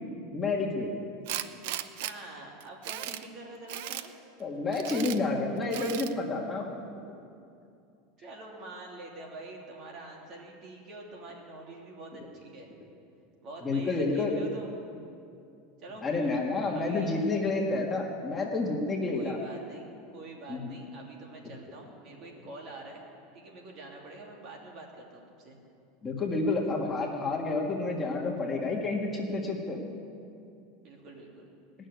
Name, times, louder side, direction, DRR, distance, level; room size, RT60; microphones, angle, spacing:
voice 1, 0.3-1.0 4.4-6.7 13.6-14.4 16.0-19.4 20.5-20.7 26.0-29.8, left 3 dB, 15° left, -1 dB, 1.7 m, -29 dB
Tools, 1.3-2.1 2.6-3.2 3.7-4.1 4.7-5.2 5.7-6.1, right 12 dB, 70° right, 0.6 m, -36 dB
voice 2, 2.0-4.1 8.2-12.7 13.4-14.8 15.8-16.0 16.7-17.1 19.1-19.8 20.1-23.0 23.3-25.6 30.8-31.4, right 2 dB, 45° right, 0 dB, 2.9 m, -46 dB
19.0 x 6.6 x 9.5 m, 2.5 s
supercardioid pair, 140°, 0 cm